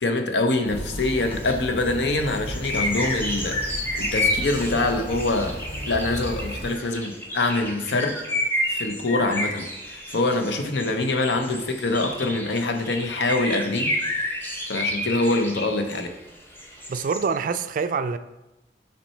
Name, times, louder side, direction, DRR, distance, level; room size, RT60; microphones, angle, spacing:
voice 1, 0.0-5.6 5.9-8.2 8.7-13.9 14.7-16.1, left 2 dB, 80° left, 6 dB, 0.7 m, -25 dB
sound 1, 0.6-6.8, equal, 35° left, 1.1 m, -35 dB
sound 2, 1.2-1.6 1.8-1.9 2.2-16.1 16.6-17.3, left 1 dB, 10° left, 0.7 m, -30 dB
voice 2, 16.9-18.2, right 5 dB, 50° right, 11 dB, 0.3 m, -25 dB
5.9 x 4.5 x 4.3 m, 0.98 s
head